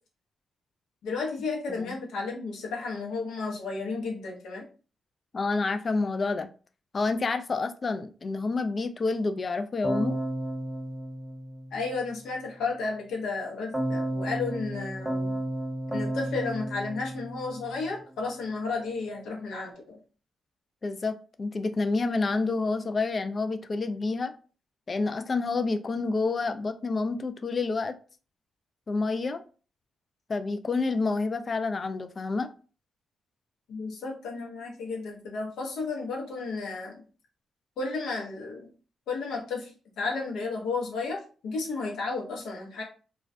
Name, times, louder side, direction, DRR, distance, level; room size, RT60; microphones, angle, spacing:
voice 1, 1.0-4.7 11.7-15.4 15.9-20.0 33.7-37.0 37.8-38.7 39.1-42.8, left 4 dB, 80° left, -1 dB, 0.7 m, -33 dB
voice 2, 5.3-6.5 6.9-10.2 20.8-24.3 24.9-28.0 28.9-29.4 30.3-32.5, left 3 dB, 45° left, 9 dB, 0.3 m, -28 dB
Keyboard (musical), 9.8-12.2 13.7-18.0, right 1 dB, 10° right, 0.8 m, -33 dB
2.3 x 2.2 x 2.5 m, 0.37 s
supercardioid pair, 45°, 0 cm